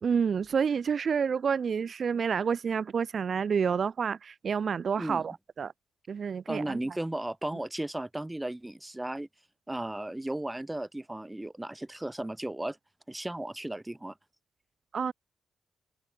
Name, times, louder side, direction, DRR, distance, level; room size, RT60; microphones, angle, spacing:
voice 1, 0.0-5.7 6.1-6.8 14.9-15.1, right 6 dB, 45° right, 0.9 m, -29 dB
voice 2, 6.5-9.3 9.7-12.8 13.1-14.2, right 1 dB, 10° right, 1.3 m, -35 dB
open air
cardioid pair, 130°, 0 cm